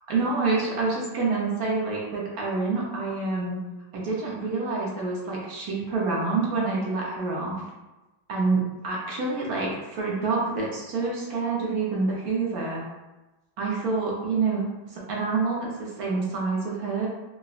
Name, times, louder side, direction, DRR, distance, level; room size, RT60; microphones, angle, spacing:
voice 1, 0.1-3.6 3.9-7.6 8.3-12.8 13.6-14.6 14.9-17.1, right 3 dB, 65° right, -4 dB, 1.0 m, -27 dB
3.8 x 2.1 x 2.3 m, 1.1 s
omnidirectional pair, 2.0 m